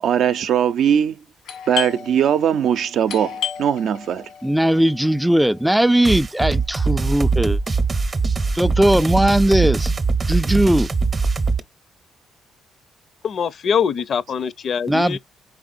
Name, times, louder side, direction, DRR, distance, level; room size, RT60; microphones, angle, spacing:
voice 1, 0.0-1.2 1.7-4.3, right 9 dB, 70° right, 0.5 m, -20 dB
Doorbell, 1.4-6.9, left 9 dB, 85° left, 1.4 m, -34 dB
voice 2, 4.4-7.6 8.6-9.9 10.3-10.9 14.9-15.2, right 1 dB, 5° right, 0.3 m, -18 dB
sound 1, 6.0-11.6, right 4 dB, 35° right, 0.7 m, -21 dB
voice 3, 13.2-15.2, left 7 dB, 55° left, 0.6 m, -23 dB
4.7 x 3.6 x 2.5 m
cardioid pair, 90°, 0 cm